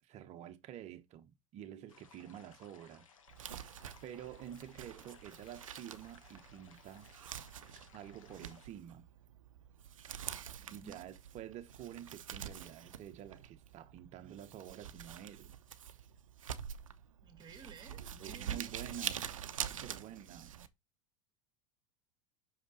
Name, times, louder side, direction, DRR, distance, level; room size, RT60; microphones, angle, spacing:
voice 1, 0.0-3.1 3.6-7.1 7.9-9.1 10.7-15.5 18.2-20.5, right 10 dB, 45° right, 1.2 m, -49 dB
sound 1, 1.9-8.7, left 6 dB, 90° left, 1.4 m, -62 dB
Crumpling crinkling, 3.3-20.7, right 9 dB, 90° right, 0.7 m, -46 dB
voice 2, 10.6-11.0 17.2-18.8, right 5 dB, 25° right, 2.5 m, -54 dB
6.1 x 5.0 x 4.0 m
hypercardioid pair, 100°, 17 cm